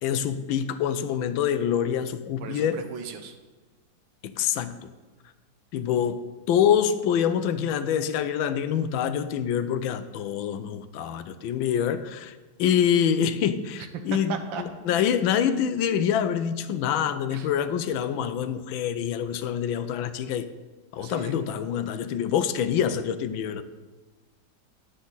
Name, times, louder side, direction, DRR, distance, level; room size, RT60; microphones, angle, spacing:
voice 1, 0.0-2.8 4.2-4.8 5.7-20.5 20.9-23.6, left 8 dB, 90° left, 11 dB, 1.4 m, -26 dB
voice 2, 2.4-3.3 13.8-13.9 14.3-14.6 17.3-17.5 21.0-21.3, right 7 dB, 80° right, 6 dB, 1.6 m, -36 dB
10.0 x 8.3 x 4.0 m, 1.2 s
omnidirectional pair, 2.1 m